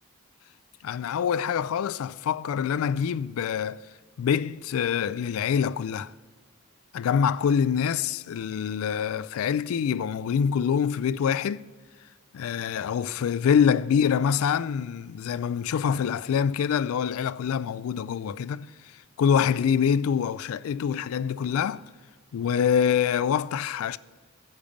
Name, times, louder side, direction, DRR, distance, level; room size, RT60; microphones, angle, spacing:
voice 1, 0.8-3.9 4.2-6.1 6.9-11.7 12.3-18.7 19.2-21.8 22.3-24.0, left 7 dB, 70° left, 0.3 m, -25 dB
10.0 x 5.2 x 7.0 m
head